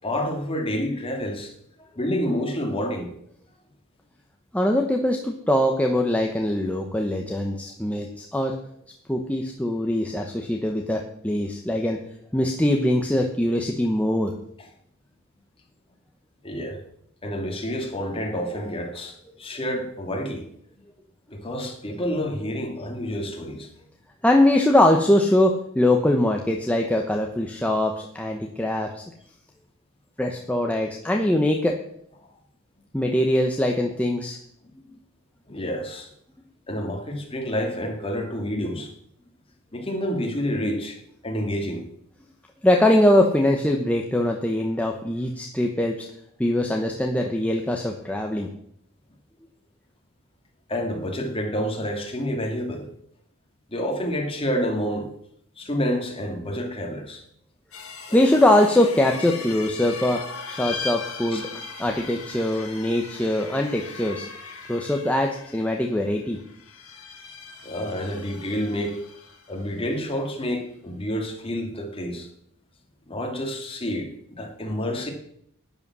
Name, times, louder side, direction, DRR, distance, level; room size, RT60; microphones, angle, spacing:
voice 1, 0.0-1.5 2.0-3.1 16.4-16.8 17.2-20.5 21.3-23.7 35.5-36.1 36.7-38.9 39.7-41.8 50.7-52.9 53.7-55.1 55.6-57.2 58.1-58.4 61.3-61.4 67.6-69.0 69.5-72.3 73.1-75.1, equal, 25° left, 2.5 m, -29 dB
voice 2, 4.5-8.5 9.1-12.0 12.3-14.3 24.2-29.0 30.2-31.7 32.9-34.4 42.6-46.0 46.4-48.5 58.1-60.2 60.5-61.4 61.8-64.3 64.7-66.4, left 1 dB, 5° left, 1.0 m, -22 dB
sound 1, 57.7-69.7, left 4 dB, 70° left, 2.2 m, -39 dB
11.0 x 9.8 x 6.2 m
head